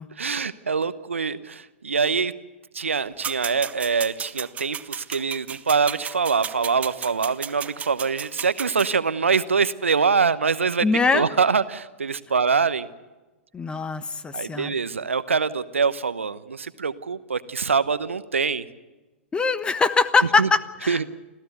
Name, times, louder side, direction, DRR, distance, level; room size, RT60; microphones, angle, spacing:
voice 1, 0.2-2.3 2.7-10.8 11.1-12.9 14.3-18.6 20.4-20.5 20.9-21.0, right 5 dB, 80° right, 14 dB, 1.0 m, -24 dB
sound 1, 3.2-8.9, right 8 dB, 20° right, 0.8 m, -34 dB
voice 2, 10.8-11.3 13.5-14.7 19.3-21.0, left 4 dB, 15° left, 14 dB, 1.2 m, -22 dB
26.5 x 15.5 x 8.1 m, 1.2 s
figure-of-eight pair, 105°, 7 cm